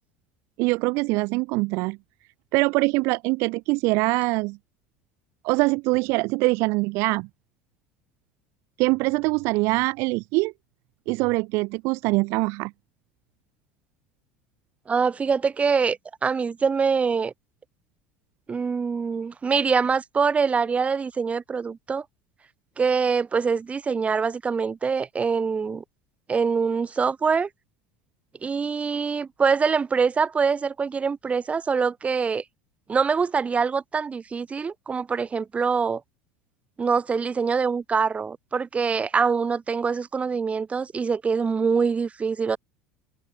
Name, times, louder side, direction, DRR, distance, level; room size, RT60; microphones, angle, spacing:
voice 1, 0.6-2.0 2.5-4.6 5.4-7.3 8.8-10.5 11.1-12.7, right 26 dB, 60° right, 0.5 m, -23 dB
voice 2, 14.9-17.3 18.5-22.0 22.8-25.8 26.3-27.5 28.4-32.4 32.9-36.0 36.8-42.6, right 5 dB, 25° right, 1.9 m, -24 dB
open air
hypercardioid pair, 75°, 5 cm